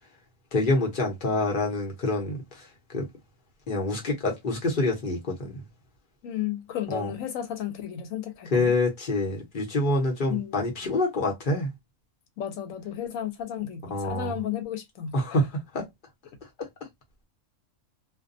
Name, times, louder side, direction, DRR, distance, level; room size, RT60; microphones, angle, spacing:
voice 1, 0.5-2.4 2.9-3.1 3.7-5.5 6.9-7.1 8.5-11.7 13.9-14.3 15.1-15.5 15.7-15.8, left 2 dB, 45° left, 0.9 m, -26 dB
voice 2, 6.2-8.7 10.3-10.9 12.4-15.4, left 10 dB, 80° left, 1.0 m, -33 dB
2.4 x 2.2 x 2.5 m
omnidirectional pair, 1.4 m